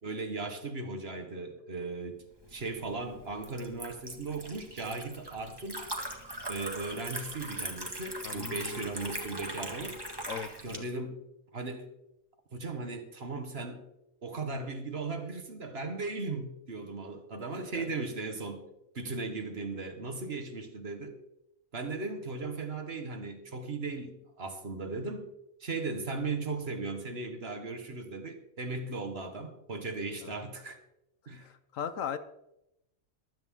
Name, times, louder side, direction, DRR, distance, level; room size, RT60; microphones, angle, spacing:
voice 1, 0.0-2.2 2.5-5.8 6.5-10.0 10.6-11.2 11.5-11.9 12.5-13.8 14.2-18.6 18.9-21.2 21.7-25.3 25.6-30.8 31.3-31.5, right 3 dB, 50° right, 6 dB, 1.7 m, -37 dB
Liquid, 2.4-10.8, right 1 dB, 15° right, 1.7 m, -41 dB
voice 2, 8.2-8.9 10.3-10.9 17.3-17.4 17.7-17.9 30.2-30.3 31.7-32.2, left 8 dB, 70° left, 12 dB, 1.1 m, -38 dB
15.5 x 12.0 x 3.7 m, 0.86 s
omnidirectional pair, 1.4 m